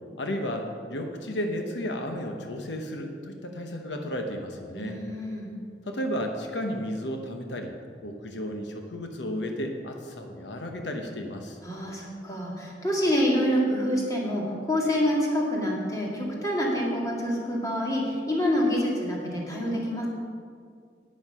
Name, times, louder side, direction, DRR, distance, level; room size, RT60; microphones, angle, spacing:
voice 1, 0.2-5.0 5.8-7.7 8.0-11.6, equal, 85° left, 4 dB, 1.0 m, -33 dB
voice 2, 4.7-5.5 11.6-20.1, equal, 20° left, -3 dB, 2.2 m, -27 dB
11.0 x 9.5 x 5.6 m, 2.2 s
head